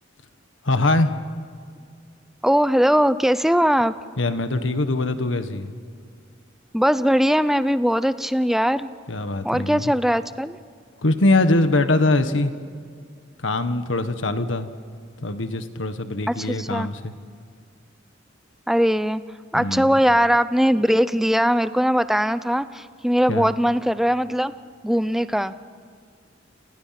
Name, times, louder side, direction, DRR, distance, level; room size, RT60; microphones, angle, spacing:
voice 1, 0.6-1.1 4.2-5.7 9.1-9.9 11.0-12.5 13.4-14.7 15.2-17.1 19.5-20.0 23.3-23.5, left 2 dB, 85° left, 9 dB, 1.6 m, -22 dB
voice 2, 2.4-3.9 6.7-8.9 9.4-10.6 16.3-16.9 18.7-19.2 19.5-24.5 24.8-25.6, equal, ahead, 13 dB, 0.6 m, -20 dB
29.5 x 28.5 x 6.0 m, 2.2 s
head